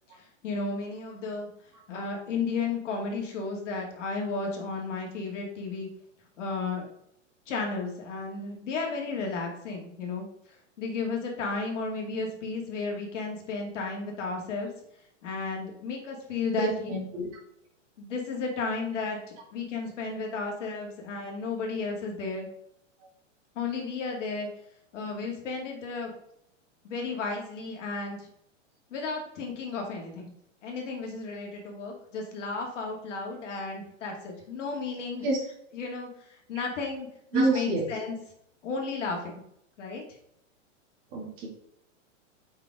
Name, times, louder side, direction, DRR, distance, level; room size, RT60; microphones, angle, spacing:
voice 1, 0.1-1.5 1.9-5.9 6.4-6.9 7.5-10.3 10.8-14.7 15.2-16.9 18.0-22.5 23.6-24.5 24.9-26.1 26.8-28.3 28.9-30.3 30.6-35.3 35.7-37.1 37.3-38.1 38.6-39.4 39.8-40.0, left 4 dB, 70° left, 1 dB, 2.3 m, -33 dB
voice 2, 16.5-17.3 35.2-35.4 36.5-36.6 37.3-37.8 41.1-41.5, right 2 dB, 30° right, -2 dB, 2.3 m, -27 dB
5.7 x 5.6 x 3.6 m, 0.73 s
supercardioid pair, 160°, 38 cm